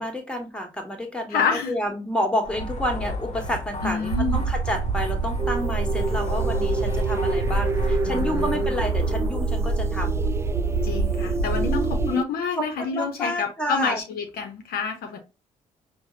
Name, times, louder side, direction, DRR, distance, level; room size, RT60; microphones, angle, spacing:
voice 1, 0.0-10.2 11.6-12.2 12.6-14.0, equal, 5° left, 1.4 m, -29 dB
voice 2, 1.3-1.7 3.8-4.4 8.0-8.7 10.8-15.2, left 6 dB, 55° left, 0.7 m, -28 dB
sound 1, 2.4-9.3, left 2 dB, 40° left, 0.9 m, -35 dB
sound 2, 4.1-12.1, right 3 dB, 60° right, 0.6 m, -26 dB
sound 3, 5.4-12.2, right 4 dB, 15° right, 0.3 m, -30 dB
5.4 x 2.1 x 2.6 m
figure-of-eight pair, 40°, 18 cm